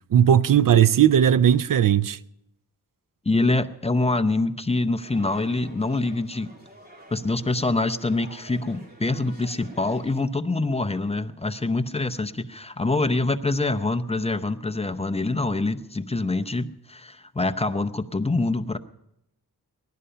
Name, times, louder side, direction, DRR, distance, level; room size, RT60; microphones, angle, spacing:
voice 1, 0.1-2.2, right 9 dB, 60° right, 0.5 m, -17 dB
voice 2, 3.3-6.5 7.1-18.8, left 2 dB, 15° left, 0.6 m, -25 dB
sound 1, 5.0-10.2, equal, 25° right, 2.7 m, -49 dB
20.5 x 11.5 x 5.6 m
wide cardioid pair, 120°, 37 cm